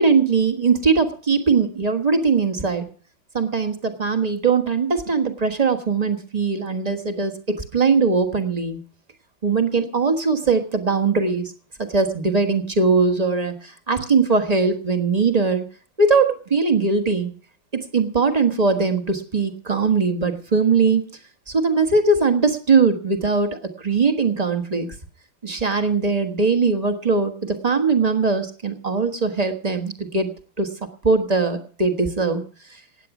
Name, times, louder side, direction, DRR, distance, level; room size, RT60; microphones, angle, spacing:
voice 1, 0.0-2.9 3.3-8.8 9.4-11.5 11.8-15.6 16.0-17.3 17.7-21.1 21.5-24.9 25.4-30.3 30.6-30.7 31.0-32.4, right 4 dB, 25° right, 7 dB, 1.2 m, -20 dB
16.5 x 9.4 x 6.0 m, 0.42 s
omnidirectional pair, 2.1 m